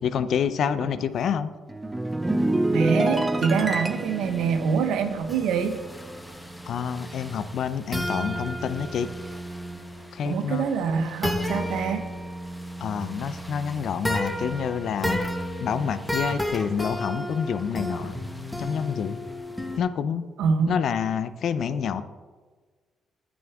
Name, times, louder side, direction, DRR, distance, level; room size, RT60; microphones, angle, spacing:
voice 1, 0.0-1.5 6.6-9.1 10.1-10.6 12.8-15.2 15.6-18.1 18.6-19.2 19.8-20.2 20.7-22.0, left 7 dB, 65° left, 13 dB, 0.5 m, -27 dB
sound 1, 1.7-6.3 6.6-6.9, right 2 dB, 15° right, 0.5 m, -27 dB
voice 2, 2.7-5.8 10.2-12.0 20.4-20.8, right 6 dB, 85° right, 8 dB, 1.0 m, -25 dB
sound 2, 3.5-19.8, equal, 5° left, 1.0 m, -33 dB
15.0 x 6.2 x 3.6 m, 1.4 s
cardioid pair, 90°, 0 cm